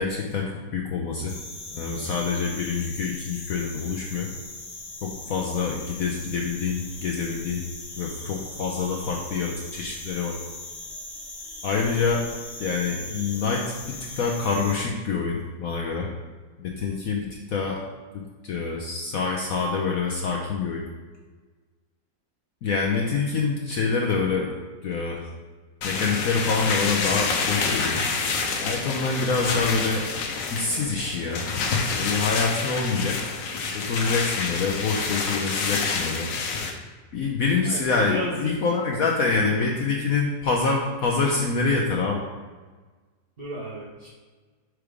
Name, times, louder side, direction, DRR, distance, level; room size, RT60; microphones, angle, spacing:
voice 1, 0.0-1.4 1.7-4.3 5.0-7.6 7.9-10.4 11.6-12.3 12.6-16.1 16.6-17.8 18.4-20.8 22.6-24.5 24.8-25.3 25.8-28.0 28.6-30.1 30.5-31.5 31.9-33.2 33.7-36.3 37.1-42.2, left 4 dB, 65° left, 0 dB, 1.0 m, -26 dB
sound 1, 1.3-14.7, left 2 dB, 40° left, 1.0 m, -40 dB
sound 2, 25.8-36.7, left 4 dB, 85° left, 1.5 m, -28 dB
voice 2, 37.6-38.5 39.1-39.7 43.4-44.1, equal, 35° right, -6 dB, 1.4 m, -34 dB
4.9 x 4.7 x 5.0 m, 1.4 s
omnidirectional pair, 1.9 m